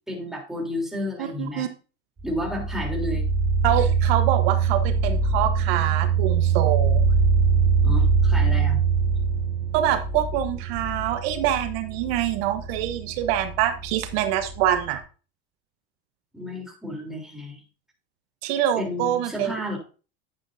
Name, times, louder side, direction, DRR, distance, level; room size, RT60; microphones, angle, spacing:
voice 1, 0.1-1.7 2.2-3.2 7.8-8.8 16.3-17.6 18.7-19.8, left 1 dB, ahead, -1 dB, 3.4 m, -31 dB
voice 2, 1.2-1.7 3.6-7.0 9.7-15.0 18.4-19.5, right 11 dB, 70° right, 8 dB, 1.1 m, -25 dB
sound 1, 2.2-15.0, right 5 dB, 20° right, 2.5 m, -23 dB
10.0 x 8.7 x 2.7 m, 0.36 s
supercardioid pair, 125°, 32 cm